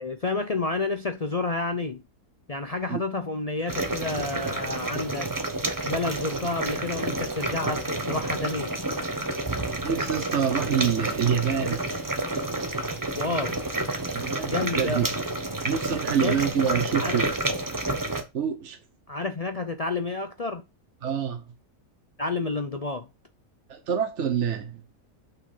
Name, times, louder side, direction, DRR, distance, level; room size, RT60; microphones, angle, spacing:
voice 1, 0.0-2.0 2.5-5.3 5.8-8.7 12.8-13.6 14.5-15.1 16.2-16.4 16.9-17.2 19.1-20.6 22.2-23.1, left 3 dB, 45° left, 0.5 m, -30 dB
sound 1, 3.7-18.2, right 2 dB, 15° right, 0.9 m, -29 dB
voice 2, 9.8-11.9 14.1-15.1 15.6-17.3 18.3-18.8 21.0-21.4 23.7-24.8, right 8 dB, 55° right, 1.1 m, -26 dB
6.2 x 5.7 x 5.5 m
omnidirectional pair, 1.5 m